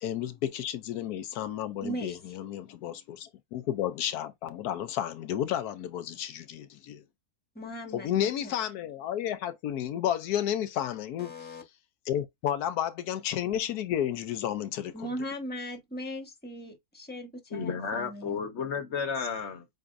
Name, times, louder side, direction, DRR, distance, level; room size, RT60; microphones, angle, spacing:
voice 1, 0.0-7.0 7.9-11.3 12.1-14.9, left 10 dB, 85° left, 1.2 m, -32 dB
voice 2, 1.8-2.4 7.5-8.5 11.2-11.6 14.9-18.4, equal, 5° left, 1.1 m, -39 dB
voice 3, 17.5-19.6, left 6 dB, 50° left, 1.2 m, -32 dB
7.7 x 2.6 x 2.5 m
omnidirectional pair, 1.6 m